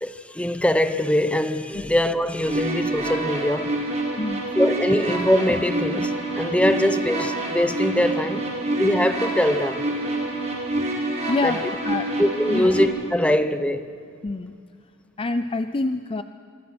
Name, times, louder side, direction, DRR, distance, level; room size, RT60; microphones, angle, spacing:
voice 1, 0.0-3.7 4.5-8.5 8.8-9.8 11.4-11.6 12.2-13.9, left 1 dB, 5° left, 0.8 m, -22 dB
sound 1, 2.4-12.8, right 2 dB, 30° right, 4.6 m, -27 dB
voice 2, 4.2-4.6 11.3-12.2 12.5-12.7 14.2-14.6 15.2-16.2, left 3 dB, 25° left, 0.5 m, -26 dB
26.0 x 22.5 x 6.1 m
head